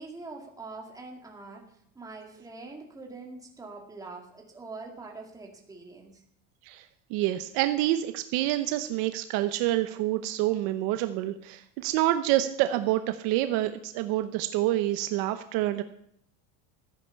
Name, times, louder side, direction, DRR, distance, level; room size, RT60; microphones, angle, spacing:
voice 1, 0.0-6.2, right 3 dB, 10° right, 1 dB, 2.2 m, -44 dB
voice 2, 7.1-15.8, right 14 dB, 55° right, 10 dB, 0.9 m, -27 dB
14.0 x 10.0 x 6.9 m, 0.69 s
cardioid pair, 170°, 41 cm